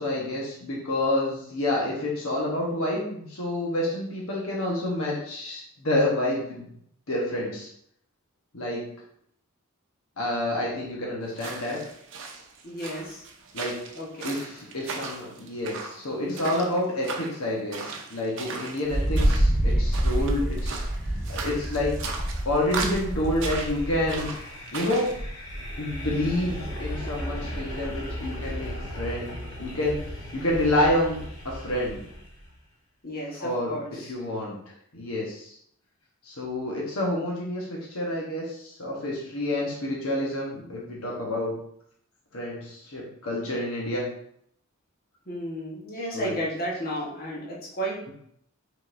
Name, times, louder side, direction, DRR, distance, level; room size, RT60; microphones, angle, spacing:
voice 1, 0.0-6.7 7.1-7.7 8.5-8.8 10.2-11.8 13.5-13.8 14.2-20.8 21.3-22.0 22.4-24.3 24.7-25.1 25.8-29.3 29.6-30.0 30.3-31.2 31.4-32.0 33.4-33.7 34.1-34.6 34.9-35.5 36.3-41.5 42.3-44.0 46.1-46.3, left 1 dB, 70° left, -3 dB, 1.1 m, -28 dB
sound 1, 11.3-25.2, right 4 dB, 60° right, 0.7 m, -38 dB
voice 2, 12.6-13.2 13.9-14.3 33.0-34.1 45.3-48.1, equal, 40° left, -5 dB, 1.2 m, -33 dB
Wind, 18.9-24.4, right 1 dB, 5° right, 1.7 m, -26 dB
sound 2, 23.3-32.5, equal, 85° left, 1.4 m, -36 dB
5.1 x 3.9 x 2.6 m, 0.69 s
head